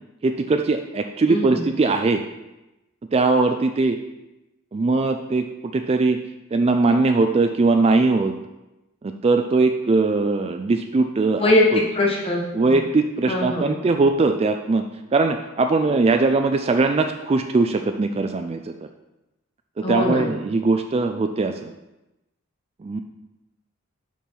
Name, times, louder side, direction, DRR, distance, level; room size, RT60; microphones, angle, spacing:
voice 1, 0.2-2.2 3.1-4.0 4.7-5.4 5.7-6.2 6.5-8.3 9.0-11.8 12.5-14.8 15.1-18.7 19.8-21.7 22.8-23.0, right 3 dB, 30° right, 6 dB, 0.3 m, -20 dB
voice 2, 1.3-1.6 11.4-12.8 13.3-13.8 19.8-20.3, left 1 dB, 25° left, -2 dB, 1.4 m, -21 dB
7.3 x 5.4 x 4.4 m, 0.98 s
head